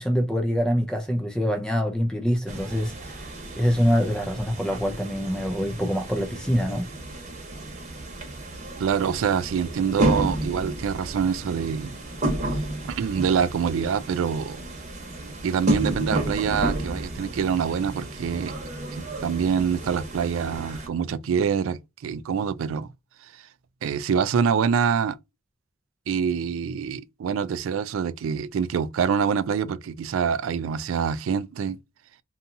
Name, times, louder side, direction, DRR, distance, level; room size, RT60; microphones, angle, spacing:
voice 1, 0.0-3.3 3.6-6.9, equal, 5° left, 0.4 m, -25 dB
sound 1, 2.5-20.9, right 1 dB, 35° right, 0.9 m, -32 dB
voice 2, 8.8-11.9 12.9-14.6 15.4-18.5 18.9-22.9 23.3-23.4 23.8-25.2 26.1-31.8, right 7 dB, 70° right, 0.3 m, -25 dB
2.7 x 2.3 x 2.6 m
head